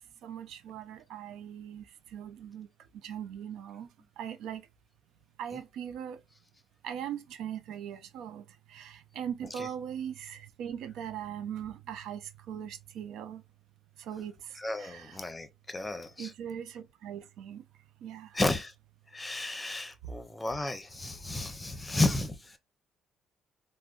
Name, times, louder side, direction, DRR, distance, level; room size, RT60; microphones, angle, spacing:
voice 1, 0.2-1.8 2.1-2.7 3.0-3.9 4.2-4.6 5.4-6.2 6.8-13.4 14.0-14.3 14.8-15.2 16.2-17.6 18.0-18.3, right 9 dB, 75° right, 0.4 m, -40 dB
voice 2, 14.5-16.3 18.3-18.7 19.1-22.6, left 2 dB, 20° left, 0.7 m, -33 dB
3.4 x 2.1 x 2.4 m
supercardioid pair, 75°, 0 cm